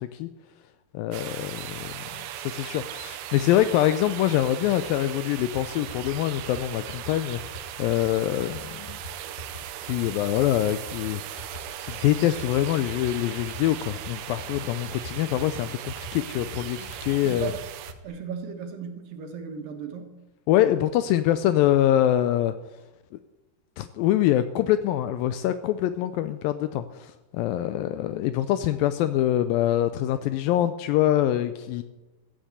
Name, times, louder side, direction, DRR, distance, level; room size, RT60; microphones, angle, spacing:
voice 1, 0.9-1.9 2.4-9.0 9.8-17.5 20.5-22.5 23.8-31.8, left 12 dB, 80° left, 11 dB, 2.1 m, -24 dB
sound 1, 1.1-17.9, right 11 dB, 85° right, 2.6 m, -38 dB
sound 2, 5.5-5.6 5.9-6.1 6.4-6.6 6.9-7.1 7.4-7.6 7.9-8.1 8.4-8.6 8.9-9.1 9.4-9.6 9.9-10.1 10.4-10.6 10.9-11.1 11.4-11.6 11.9-12.1 12.4-12.6 12.9-13.1 13.4-13.6 13.9-14.1 14.4-14.6 14.9-15.1 15.4-15.6 15.9-16.1 16.4-16.6 16.9-17.1 17.4-17.6 17.9-18.1, left 1 dB, 50° left, 2.8 m, -41 dB
voice 2, 17.2-17.6 18.0-20.2, right 6 dB, 70° right, 5 dB, 2.7 m, -36 dB
14.5 x 6.3 x 8.1 m, 1.1 s
omnidirectional pair, 4.4 m